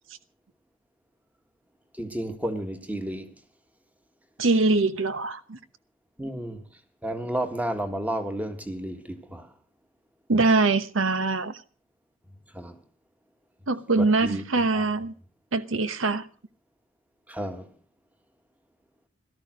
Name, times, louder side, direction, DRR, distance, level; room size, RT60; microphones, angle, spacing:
voice 1, 2.0-3.3 6.2-6.6 7.0-9.5 12.5-12.7 14.0-14.4 14.7-14.8 17.3-17.7, right 1 dB, 10° right, 1.7 m, -31 dB
voice 2, 4.4-5.6 10.3-11.6 13.7-15.1 15.5-16.2, right 3 dB, 75° right, 1.0 m, -23 dB
17.5 x 13.0 x 6.3 m
head